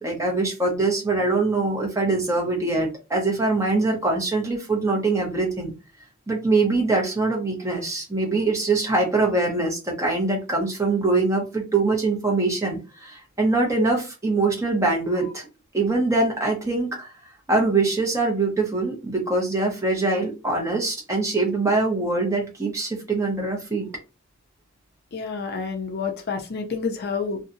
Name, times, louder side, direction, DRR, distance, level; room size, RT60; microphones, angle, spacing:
voice 1, 0.0-5.7 6.3-15.5 15.7-17.1 17.5-23.9, right 3 dB, 15° right, -1 dB, 0.8 m, -23 dB
voice 2, 25.1-27.4, left 5 dB, 50° left, 4 dB, 0.5 m, -29 dB
2.7 x 2.3 x 2.6 m, 0.29 s
head